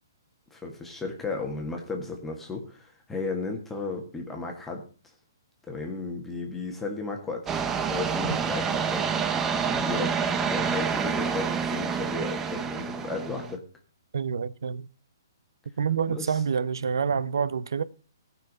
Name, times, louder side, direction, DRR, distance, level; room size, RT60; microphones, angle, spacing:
voice 1, 0.5-4.8 5.7-7.5 7.8-9.1 9.6-10.1 10.4-13.6 16.1-16.4, left 3 dB, 10° left, 1.7 m, -34 dB
sound 1, 7.5-13.5, right 6 dB, 15° right, 0.7 m, -28 dB
voice 2, 14.1-14.9 15.8-17.8, right 6 dB, 80° right, 0.7 m, -27 dB
15.5 x 5.9 x 5.4 m
hypercardioid pair, 150°, 2 cm